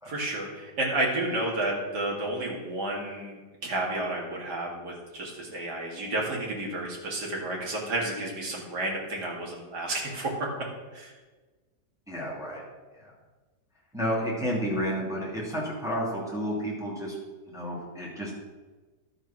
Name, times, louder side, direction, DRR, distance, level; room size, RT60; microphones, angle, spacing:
voice 1, 0.1-10.5 10.9-11.1, right 2 dB, 80° right, -3 dB, 2.9 m, -31 dB
voice 2, 12.1-12.6 13.0-13.1 13.9-17.1 17.5-18.4, equal, ahead, -5 dB, 2.7 m, -31 dB
12.0 x 6.4 x 6.0 m, 1.3 s
omnidirectional pair, 1.8 m